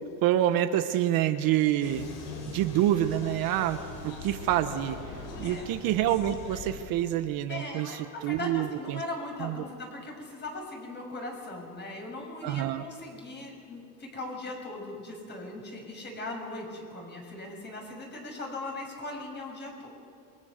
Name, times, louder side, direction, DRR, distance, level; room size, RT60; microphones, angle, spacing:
voice 1, 0.2-2.1 2.5-5.0 5.4-9.0 9.4-9.6 12.4-12.8, right 12 dB, 55° right, 9 dB, 1.2 m, -27 dB
sound 1, 1.8-6.8, left 4 dB, 65° left, 7.4 m, -41 dB
voice 2, 5.3-5.7 7.5-19.9, left 2 dB, 25° left, 1 dB, 6.7 m, -39 dB
28.0 x 23.0 x 6.7 m, 2.4 s
cardioid pair, 140°, 41 cm